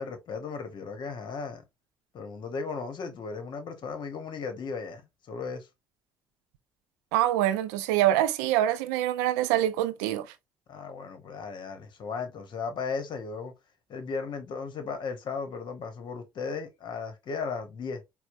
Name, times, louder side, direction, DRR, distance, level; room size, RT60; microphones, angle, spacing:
voice 1, 0.0-1.6 2.1-5.0 5.3-5.7 10.7-13.5 13.9-18.0, left 5 dB, 60° left, 1.0 m, -36 dB
voice 2, 7.1-10.3, right 13 dB, 90° right, 0.4 m, -25 dB
4.3 x 2.1 x 2.5 m
hypercardioid pair, 55°, 9 cm